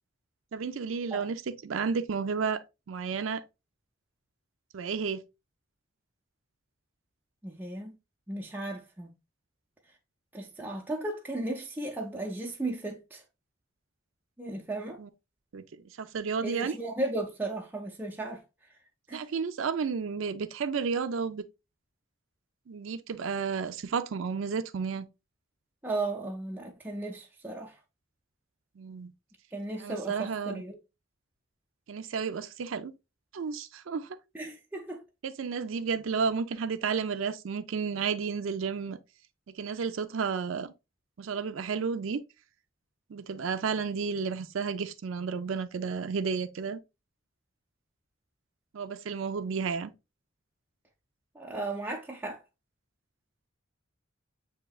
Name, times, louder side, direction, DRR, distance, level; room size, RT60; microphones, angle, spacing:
voice 1, 0.5-2.6 2.9-3.4 4.7-5.2 15.0-15.1 15.5-15.6 16.0-16.7 19.1-21.4 22.7-25.1 28.8-29.1 29.8-30.6 31.9-32.9 33.3-34.2 35.2-39.0 39.5-40.7 41.2-42.2 43.1-46.8 48.7-49.9, right 5 dB, 80° right, 0.4 m, -32 dB
voice 2, 7.4-7.9 8.3-9.1 10.3-13.2 14.4-15.0 16.4-18.4 19.1-19.3 25.8-27.8 29.5-30.8 34.3-35.0 51.3-52.4, right 2 dB, 10° right, 0.5 m, -35 dB
7.7 x 2.8 x 2.3 m
head